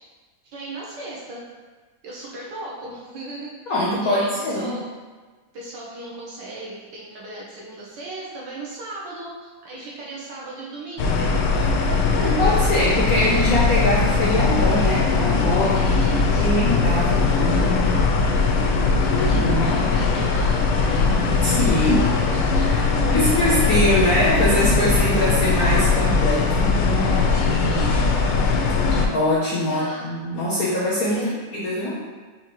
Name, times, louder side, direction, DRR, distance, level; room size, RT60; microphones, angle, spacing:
voice 1, 0.4-1.4 2.0-4.9 5.5-11.2 15.7-16.7 18.5-21.1 21.4-24.1 27.2-28.0 29.7-30.2 31.1-31.4, right 2 dB, 65° right, -4 dB, 1.3 m, -36 dB
voice 2, 3.7-4.7 12.1-15.8 16.4-17.8 19.1-19.7 21.4-22.0 22.7-22.8 23.1-26.7 29.1-32.0, left 1 dB, 65° left, -7 dB, 0.9 m, -23 dB
sound 1, 11.0-29.1, left 4 dB, 85° left, 1.5 m, -20 dB
5.8 x 2.8 x 3.0 m, 1.3 s
omnidirectional pair, 2.3 m